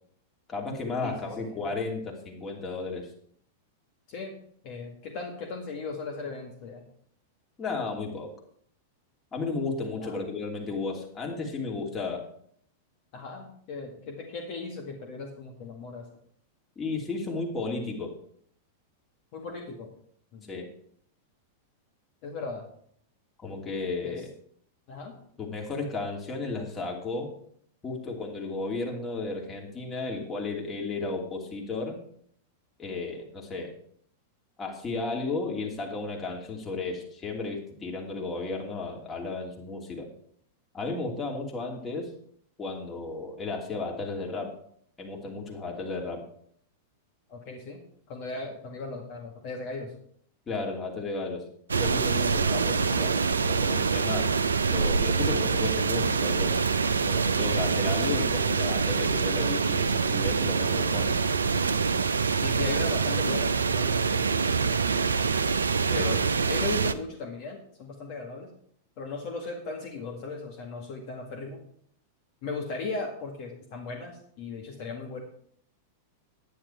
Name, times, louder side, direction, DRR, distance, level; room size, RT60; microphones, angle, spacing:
voice 1, 0.5-3.1 7.6-8.3 9.3-12.3 16.8-18.1 20.5-20.7 23.4-24.3 25.4-27.3 27.8-32.0 32.8-33.7 34.6-40.1 40.7-42.1 42.6-44.6 45.0-46.3 50.5-51.4 51.8-54.3 54.7-56.6 57.1-61.2 65.8-66.2, left 3 dB, 20° left, 0 dB, 2.8 m, -33 dB
voice 2, 4.6-6.8 10.0-10.2 13.1-16.1 19.3-19.9 20.3-20.5 22.2-22.6 24.0-24.2 24.9-25.1 47.3-47.8 48.1-49.9 52.6-52.9 62.4-65.3 65.9-66.2 66.5-68.5 69.0-71.6 72.4-75.2, left 3 dB, 50° left, 1 dB, 1.9 m, -37 dB
sound 1, 51.7-66.9, right 5 dB, 80° right, 0.5 m, -25 dB
10.0 x 9.9 x 4.5 m, 0.63 s
figure-of-eight pair, 95°, 0 cm